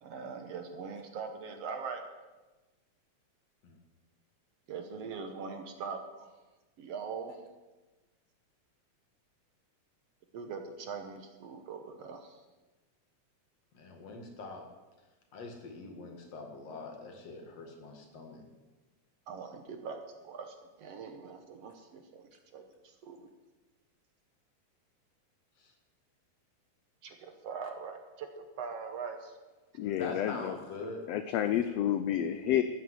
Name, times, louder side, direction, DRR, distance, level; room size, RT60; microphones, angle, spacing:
voice 1, 0.0-2.0 4.7-6.3 6.8-7.4 10.3-12.4 19.3-23.3 27.0-29.4 30.4-30.5, right 5 dB, 60° right, 6 dB, 2.0 m, -42 dB
voice 2, 13.7-14.6 15.3-18.4 25.6-25.7 29.8-31.0, left 3 dB, 60° left, 3 dB, 2.9 m, -43 dB
voice 3, 29.8-30.6 31.1-32.6, left 11 dB, 75° left, 10 dB, 1.5 m, -29 dB
13.5 x 9.4 x 7.9 m, 1.2 s
omnidirectional pair, 3.4 m